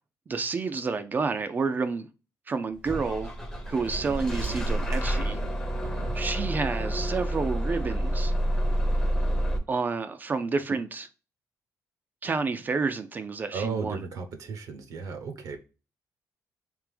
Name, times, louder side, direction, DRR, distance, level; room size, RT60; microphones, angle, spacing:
voice 1, 0.3-2.1 2.5-3.3 3.7-5.4 6.1-8.3 9.7-11.1 12.2-14.0, right 4 dB, 30° right, 0.3 m, -29 dB
Bus / Engine starting, 2.8-9.6, right 1 dB, 10° left, 0.6 m, -28 dB
voice 2, 5.8-6.2 13.5-15.6, right 5 dB, 65° right, 0.7 m, -35 dB
3.4 x 2.9 x 3.2 m
cardioid pair, 140°, 6 cm